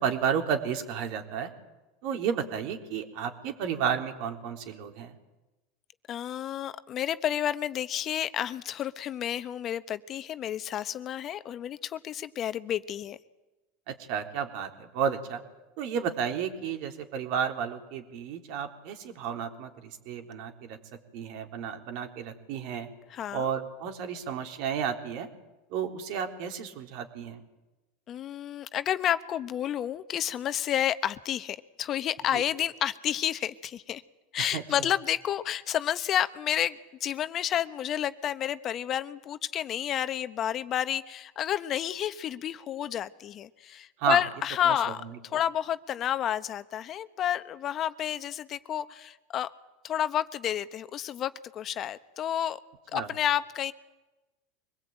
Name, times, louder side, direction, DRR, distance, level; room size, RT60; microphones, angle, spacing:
voice 1, 0.0-1.5 2.0-5.1 13.9-15.4 15.8-20.8 21.1-22.9 23.3-25.3 25.7-27.4 32.3-32.4 34.4-34.6 44.0-44.2 44.6-45.1 52.9-53.1, right 7 dB, 60° right, 5 dB, 3.7 m, -32 dB
voice 2, 6.1-13.2 23.1-23.5 28.1-34.0 34.3-45.0 45.3-49.5 49.8-52.6 52.9-53.7, left 10 dB, 40° left, 13 dB, 1.2 m, -30 dB
24.0 x 21.0 x 9.0 m, 1.1 s
hypercardioid pair, 90°, 0 cm